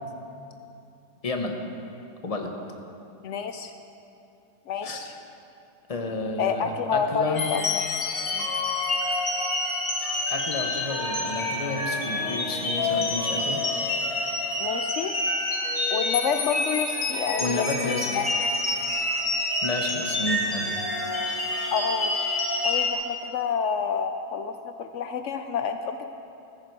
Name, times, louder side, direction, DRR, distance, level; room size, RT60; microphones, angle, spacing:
voice 1, 1.2-1.6 2.2-2.5 4.8-5.0 5.9-7.5 10.3-13.6 17.4-18.2 19.6-20.7, left 3 dB, 25° left, 3 dB, 1.0 m, -31 dB
voice 2, 3.2-3.7 4.7-5.2 6.4-7.7 8.3-8.5 14.6-15.1 15.9-18.3 21.7-22.1 22.6-26.0, left 6 dB, 85° left, 8 dB, 0.6 m, -28 dB
sound 1, 7.3-22.9, left 2 dB, 50° left, 2.5 m, -27 dB
15.5 x 14.0 x 4.7 m, 2.7 s
omnidirectional pair, 1.9 m